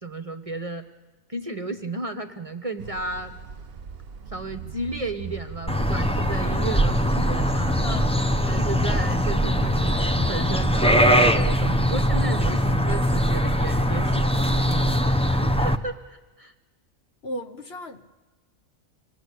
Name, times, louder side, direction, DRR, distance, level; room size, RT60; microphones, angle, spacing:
voice 1, 0.0-0.9 1.3-3.3 4.3-7.8 8.5-16.5, right 3 dB, 25° right, 1.1 m, -33 dB
sound 1, 2.8-12.5, right 6 dB, 45° right, 1.1 m, -39 dB
sound 2, 5.7-15.8, equal, 5° left, 0.7 m, -21 dB
voice 2, 7.8-8.2 17.2-18.1, left 1 dB, 50° left, 1.2 m, -35 dB
26.5 x 20.5 x 8.5 m
omnidirectional pair, 1.5 m